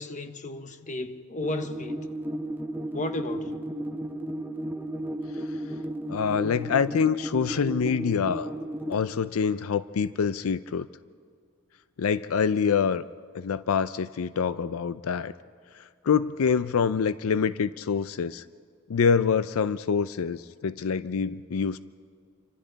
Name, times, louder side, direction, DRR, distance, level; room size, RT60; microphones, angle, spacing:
voice 1, 0.0-2.1 2.9-3.6, left 2 dB, 35° left, 1.1 m, -33 dB
sound 1, 1.4-8.9, right 1 dB, 10° right, 0.8 m, -34 dB
voice 2, 6.1-8.5 8.9-10.9 12.0-13.0 13.3-15.3 15.7-18.4 18.9-21.8, left 6 dB, 90° left, 0.5 m, -26 dB
29.5 x 25.0 x 4.0 m
head